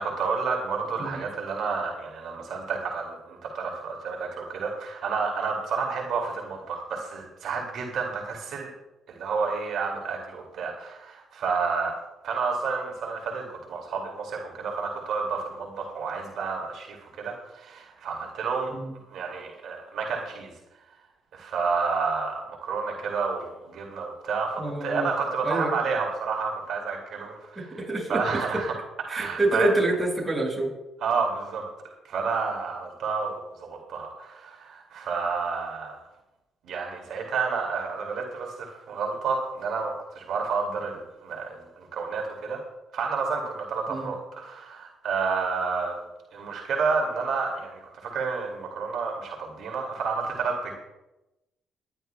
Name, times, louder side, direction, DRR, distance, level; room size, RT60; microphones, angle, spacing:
voice 1, 0.0-8.7 9.1-12.0 12.2-18.7 19.1-20.5 21.3-27.6 28.1-28.7 29.1-29.7 31.0-31.6 32.1-36.0 36.6-42.6 42.9-46.0 46.3-50.8, right 5 dB, 75° right, 0 dB, 2.4 m, -30 dB
voice 2, 24.6-25.1 25.4-25.8 27.6-28.2 29.1-30.7 43.9-44.1, right 2 dB, 15° right, -2 dB, 5.5 m, -27 dB
23.5 x 11.0 x 2.3 m, 0.95 s
cardioid pair, 90°, 0 cm